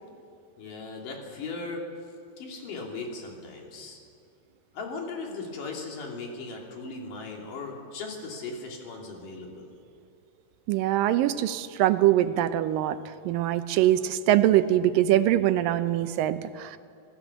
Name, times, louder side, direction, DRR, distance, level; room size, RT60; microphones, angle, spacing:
voice 1, 0.6-1.8 2.4-4.0 4.7-9.7, left 3 dB, 70° left, 0 dB, 4.6 m, -38 dB
voice 2, 10.7-13.0 13.3-16.8, right 13 dB, 90° right, 12 dB, 2.5 m, -23 dB
26.5 x 17.0 x 7.2 m, 2.3 s
omnidirectional pair, 3.9 m